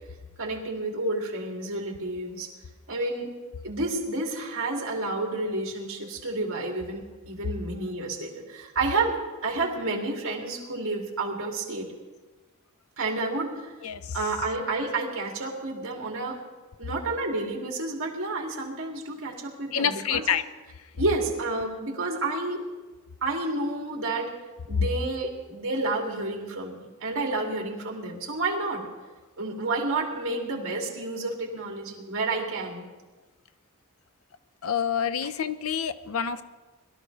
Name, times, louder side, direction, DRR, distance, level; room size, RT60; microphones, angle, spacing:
voice 1, 0.4-2.5 2.9-3.3 3.6-9.2 9.4-11.9 13.0-13.7 14.1-16.4 16.8-20.4 21.0-22.6 23.2-24.3 24.7-28.8 29.4-32.9, right 2 dB, 65° right, -1 dB, 2.8 m, -30 dB
voice 2, 13.8-14.2 19.7-20.4 24.7-24.8 34.6-36.4, left 7 dB, 70° left, 11 dB, 0.6 m, -27 dB
21.5 x 12.5 x 3.4 m, 1.3 s
head